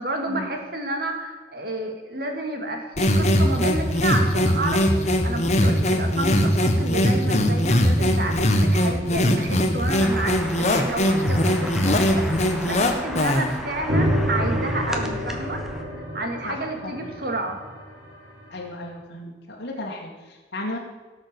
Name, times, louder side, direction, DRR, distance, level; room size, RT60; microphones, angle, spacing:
voice 1, 0.0-15.7 15.9-17.6, right 2 dB, 55° right, 3 dB, 2.4 m, -30 dB
sound 1, 3.0-13.6, equal, 40° left, 1.4 m, -21 dB
sound 2, 10.0-15.8, equal, ahead, 1.2 m, -34 dB
sound 3, 13.9-18.5, equal, 85° right, 4.4 m, -28 dB
voice 2, 16.4-17.1 18.5-20.8, left 1 dB, 80° left, -4 dB, 2.2 m, -35 dB
17.5 x 6.7 x 7.0 m, 1.3 s
head